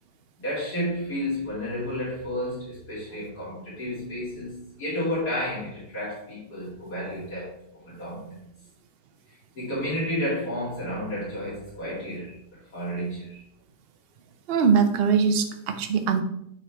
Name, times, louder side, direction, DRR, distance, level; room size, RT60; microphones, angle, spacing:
voice 1, 0.4-8.4 9.3-13.4, equal, 70° left, -9 dB, 3.0 m, -31 dB
voice 2, 14.5-16.2, right 6 dB, 50° right, 7 dB, 0.7 m, -22 dB
9.7 x 4.4 x 3.4 m, 0.75 s
omnidirectional pair, 1.7 m